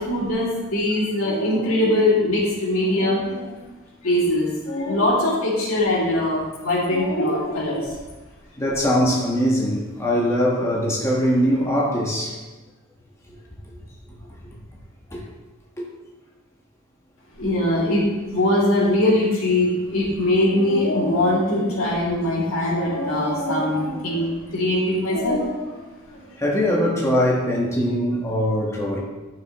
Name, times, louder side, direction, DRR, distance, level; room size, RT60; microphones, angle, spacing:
voice 1, 0.0-3.6 4.0-7.9 17.4-25.8 26.1-26.2, left 1 dB, 90° left, -5 dB, 2.7 m, -22 dB
voice 2, 8.6-12.4 15.1-15.2 26.4-29.0, equal, 15° left, -3 dB, 1.4 m, -21 dB
11.5 x 6.1 x 3.0 m, 1.2 s
head